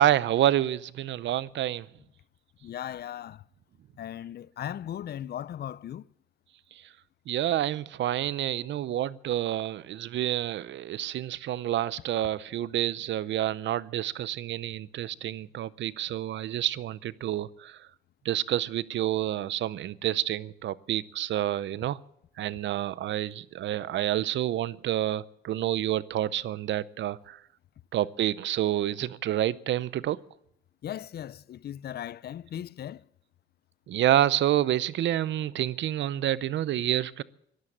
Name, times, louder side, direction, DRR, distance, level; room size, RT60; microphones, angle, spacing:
voice 1, 0.0-1.9 7.3-17.8 18.2-22.0 22.4-27.4 27.9-30.2 33.9-37.2, right 12 dB, 70° right, 0.6 m, -28 dB
voice 2, 2.6-3.4 4.0-6.0 30.8-33.0, left 10 dB, 55° left, 0.5 m, -37 dB
13.0 x 12.5 x 8.8 m
cardioid pair, 90°, 20 cm